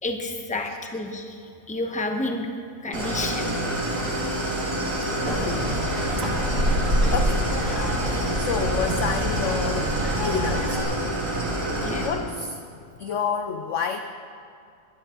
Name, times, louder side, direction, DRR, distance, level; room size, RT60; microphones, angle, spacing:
voice 1, 0.0-2.5 2.8-3.6 11.7-12.1, left 2 dB, 10° left, 3 dB, 0.4 m, -30 dB
Idling, 2.9-12.1, right 1 dB, 70° right, 3.9 m, -27 dB
voice 2, 5.2-5.8 6.2-6.3 6.7-6.8 7.1-7.5 7.9-11.0 11.8-12.6 13.0-14.0, left 6 dB, 90° left, 7 dB, 0.6 m, -30 dB
sound 1, 5.3-10.8, equal, 45° right, 2.7 m, -27 dB
20.5 x 10.5 x 3.8 m, 2.4 s
omnidirectional pair, 1.9 m